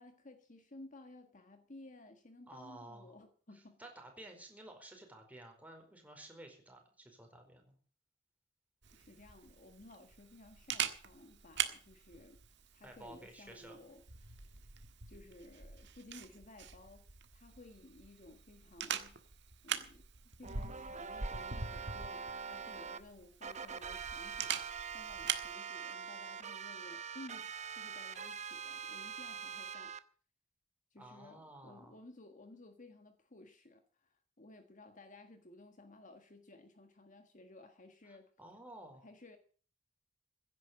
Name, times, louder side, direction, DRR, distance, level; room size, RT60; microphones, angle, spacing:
voice 1, 0.0-3.8 8.9-12.4 12.7-14.5 15.1-19.2 19.6-24.6 24.9-29.9 30.9-38.3 39.0-39.4, left 2 dB, 40° left, 7 dB, 1.5 m, -56 dB
voice 2, 2.5-3.2 3.5-7.7 12.8-13.8 31.0-31.9 38.4-39.1, right 1 dB, 10° right, 3 dB, 4.8 m, -53 dB
Camera, 8.8-25.5, right 8 dB, 65° right, 1.6 m, -43 dB
sound 1, 20.4-23.0 23.4-30.0, right 6 dB, 35° right, 0.8 m, -44 dB
16.0 x 9.6 x 7.4 m, 0.43 s
head